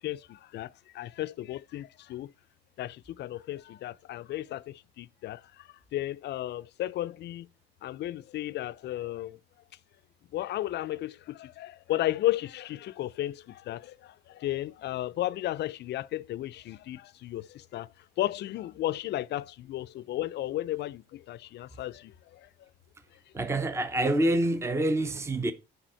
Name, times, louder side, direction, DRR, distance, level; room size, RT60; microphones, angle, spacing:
voice 1, 0.0-2.3 2.8-7.5 7.8-9.4 10.3-17.9 18.2-22.5, left 14 dB, 65° left, 0.4 m, -34 dB
voice 2, 23.3-25.5, right 1 dB, 15° right, 0.7 m, -26 dB
8.9 x 4.9 x 4.4 m
cardioid pair, 135°, 19 cm